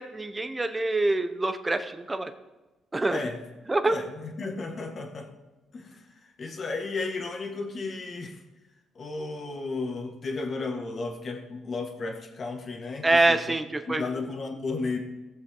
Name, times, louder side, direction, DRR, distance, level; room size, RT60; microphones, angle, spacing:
voice 1, 0.0-2.3 2.9-3.2 3.7-4.0 13.0-14.0, right 2 dB, 20° right, 9 dB, 1.0 m, -25 dB
voice 2, 3.1-3.4 3.9-5.3 5.7-6.1 6.4-8.4 9.0-13.6 13.9-15.0, left 3 dB, 45° left, 3 dB, 2.1 m, -33 dB
18.0 x 7.3 x 3.9 m, 1.1 s
cardioid pair, 90°, 0 cm